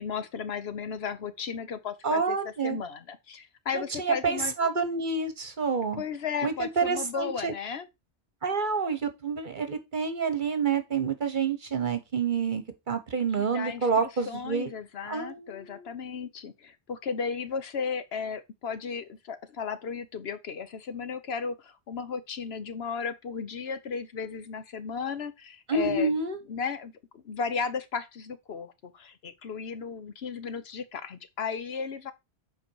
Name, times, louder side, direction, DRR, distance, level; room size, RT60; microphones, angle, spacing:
voice 1, 0.0-4.5 6.0-7.9 13.4-26.2 26.5-32.1, left 6 dB, 70° left, 1.1 m, -35 dB
voice 2, 2.0-2.8 3.7-6.0 6.4-7.5 8.4-14.7 15.1-15.9 25.7-26.4, right 5 dB, 50° right, 1.4 m, -28 dB
7.7 x 4.8 x 4.6 m
omnidirectional pair, 1.1 m